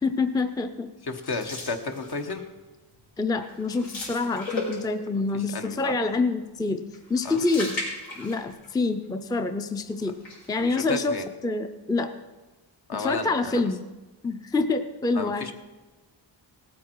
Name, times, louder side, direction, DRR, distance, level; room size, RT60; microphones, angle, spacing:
voice 1, 0.0-0.9 3.2-6.8 7.1-7.8 8.2-10.2 10.5-11.2 11.4-12.1 13.0-13.8 14.2-15.5, left 3 dB, 10° left, 8 dB, 0.5 m, -26 dB
voice 2, 1.0-2.4 5.1-5.9 7.2-7.4 10.6-11.3 12.9-13.6 15.1-15.5, left 3 dB, 55° left, 6 dB, 1.1 m, -33 dB
sound 1, 1.2-2.5 2.9-3.1 3.4-5.2 6.9-8.7 9.0-9.1 10.0-10.8, left 2 dB, 85° left, 4.4 m, -36 dB
18.0 x 8.5 x 4.6 m, 1.2 s
wide cardioid pair, 130°, 46 cm